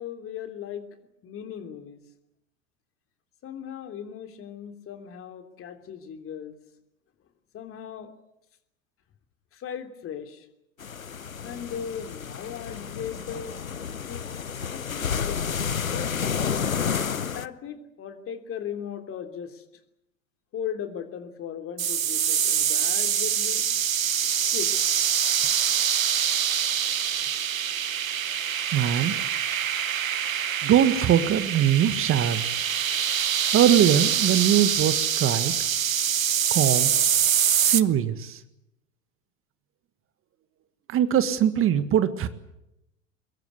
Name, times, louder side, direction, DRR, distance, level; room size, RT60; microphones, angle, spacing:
voice 1, 0.0-2.0 3.4-6.6 7.5-8.1 9.5-10.5 11.4-13.6 14.1-14.3 14.6-16.2 17.3-19.6 20.5-23.6 24.5-24.9, left 8 dB, 35° left, 7 dB, 3.2 m, -37 dB
sound 1, 10.8-17.5, left 7 dB, 90° left, 0.9 m, -30 dB
sound 2, 21.8-37.8, right 9 dB, 80° right, 1.0 m, -25 dB
voice 2, 28.7-29.1 30.6-32.4 33.5-35.5 36.5-36.9 37.5-38.4 40.9-42.3, right 10 dB, 30° right, 12 dB, 1.7 m, -22 dB
24.0 x 22.0 x 8.2 m, 0.83 s
figure-of-eight pair, 85°, 40 cm